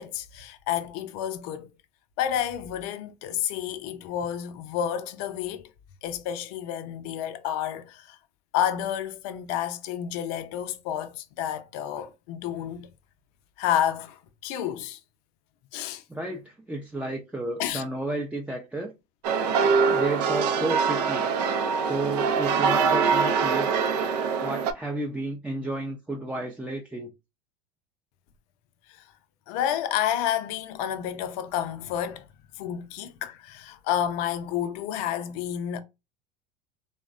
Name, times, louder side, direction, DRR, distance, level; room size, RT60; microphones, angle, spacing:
voice 1, 0.0-1.7 2.2-5.7 6.0-8.2 8.5-12.9 13.6-14.2 14.4-15.0 15.7-16.0 17.6-17.8 29.5-32.3 32.6-35.8, left 10 dB, 65° left, 0.5 m, -30 dB
voice 2, 16.1-18.9 19.9-21.3 21.8-23.9 24.4-27.1, right 2 dB, 5° right, 0.4 m, -32 dB
sound 1, 19.2-24.7, right 5 dB, 80° right, 0.4 m, -24 dB
3.3 x 2.1 x 2.4 m
hypercardioid pair, 85°, 20 cm